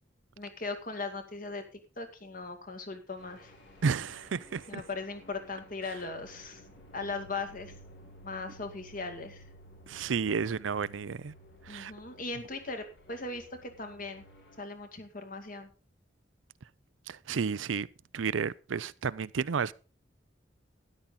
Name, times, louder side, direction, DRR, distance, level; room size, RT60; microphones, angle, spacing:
voice 1, 0.4-1.6 2.0-3.5 4.7-6.6 6.9-7.7 8.2-9.4 11.7-14.2 14.6-15.7, left 3 dB, 45° left, 2.0 m, -39 dB
sound 1, 3.1-14.6, equal, 65° left, 3.5 m, -55 dB
voice 2, 3.8-4.8 9.9-11.3 11.6-11.9 17.1-17.9 18.1-19.7, right 5 dB, 90° right, 0.5 m, -31 dB
13.0 x 10.5 x 3.9 m
head